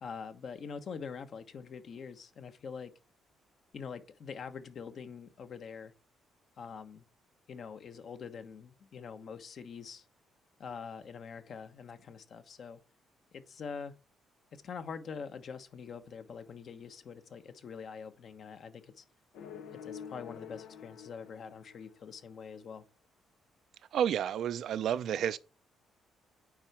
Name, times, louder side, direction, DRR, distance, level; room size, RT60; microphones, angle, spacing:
voice 1, 0.0-2.9 3.7-5.9 6.6-7.0 7.5-10.0 10.6-12.8 13.3-13.9 14.5-19.0 19.8-22.8, left 6 dB, 55° left, 1.2 m, -44 dB
sound 1, 19.3-22.2, left 7 dB, 85° left, 0.9 m, -47 dB
voice 2, 23.9-25.4, right 9 dB, 70° right, 0.5 m, -30 dB
8.7 x 4.7 x 4.3 m
cardioid pair, 90°, 0 cm